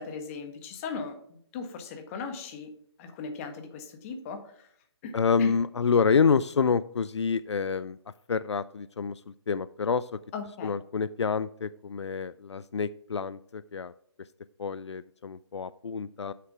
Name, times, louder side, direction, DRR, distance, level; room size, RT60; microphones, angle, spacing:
voice 1, 0.0-2.7 3.0-4.7 5.0-5.1 5.4-5.5 10.3-10.7, left 5 dB, 30° left, 6 dB, 1.5 m, -38 dB
voice 2, 5.1-8.0 8.3-10.1 10.6-13.9 14.6-16.3, left 5 dB, 85° left, 16 dB, 0.4 m, -27 dB
7.6 x 6.8 x 4.8 m, 0.67 s
figure-of-eight pair, 140°, 14 cm